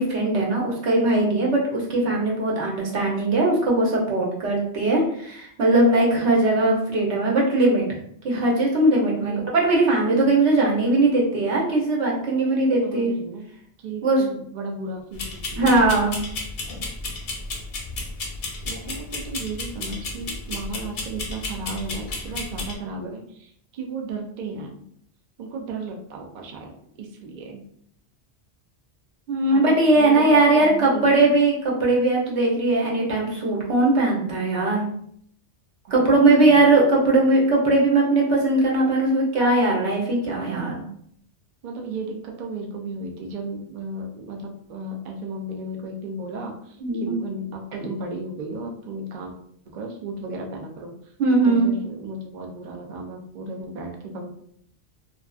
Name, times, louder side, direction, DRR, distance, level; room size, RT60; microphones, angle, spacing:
voice 1, 0.0-7.8 8.2-13.1 14.0-14.2 15.6-16.2 29.3-34.8 35.9-40.9 46.8-47.1 51.2-51.7, right 2 dB, 80° right, -2 dB, 1.0 m, -20 dB
voice 2, 9.2-9.5 12.5-13.5 13.8-15.8 18.6-24.8 25.4-27.6 29.5-31.3 35.9-36.6 41.6-49.3 49.7-51.1 51.4-54.3, right 2 dB, 60° right, 1 dB, 0.5 m, -35 dB
sound 1, 15.2-22.8, left 2 dB, 60° left, 0.6 m, -33 dB
2.5 x 2.3 x 2.3 m, 0.67 s
omnidirectional pair, 1.2 m